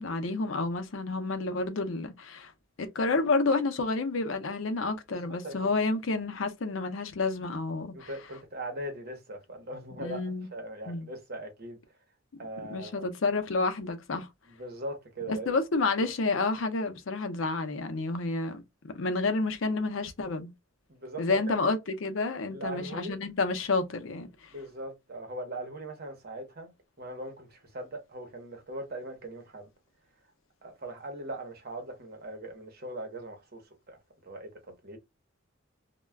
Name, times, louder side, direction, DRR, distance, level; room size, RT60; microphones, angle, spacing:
voice 1, 0.0-2.5 2.8-8.1 10.0-10.5 10.9-11.1 12.7-14.3 15.3-20.5 21.2-24.5, left 3 dB, 70° left, 0.5 m, -30 dB
voice 2, 5.2-5.6 7.9-11.8 12.4-13.1 14.6-15.5 20.9-21.6 22.5-23.2 24.5-29.7 30.6-35.0, right 1 dB, 50° right, 0.9 m, -40 dB
2.3 x 2.2 x 3.2 m
head